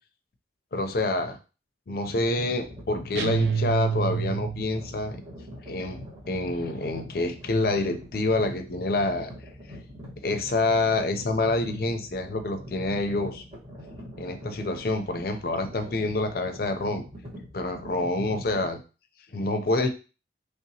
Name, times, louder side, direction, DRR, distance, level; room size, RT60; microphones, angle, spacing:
voice 1, 0.7-1.4 1.9-5.2 5.6-9.3 10.2-13.4 14.2-17.0 17.5-18.8 19.3-19.9, left 2 dB, 55° left, 7 dB, 0.5 m, -27 dB
sound 1, 2.6-18.7, equal, 35° right, 1.1 m, -43 dB
sound 2, 3.1-4.9, right 6 dB, 70° right, 0.3 m, -27 dB
3.3 x 2.8 x 2.7 m, 0.32 s
head